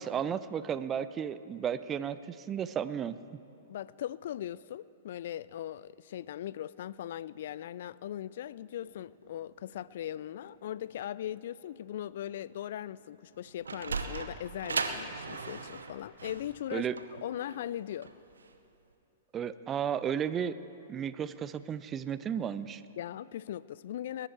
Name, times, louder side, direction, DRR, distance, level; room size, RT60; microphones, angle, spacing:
voice 1, 0.0-3.2 16.7-17.0 19.3-20.6 20.9-22.8, right 8 dB, 25° right, 15 dB, 0.5 m, -33 dB
voice 2, 3.7-18.1 23.0-24.3, left 11 dB, 60° left, 20 dB, 0.3 m, -39 dB
Run / Walk footsteps, 8.3-13.4 13.7-13.8, left 2 dB, 80° left, 2.9 m, -61 dB
Sliding door, 13.3-18.5, right 4 dB, 80° right, 0.8 m, -37 dB
20.0 x 11.0 x 4.5 m, 2.9 s
figure-of-eight pair, 110°, 0 cm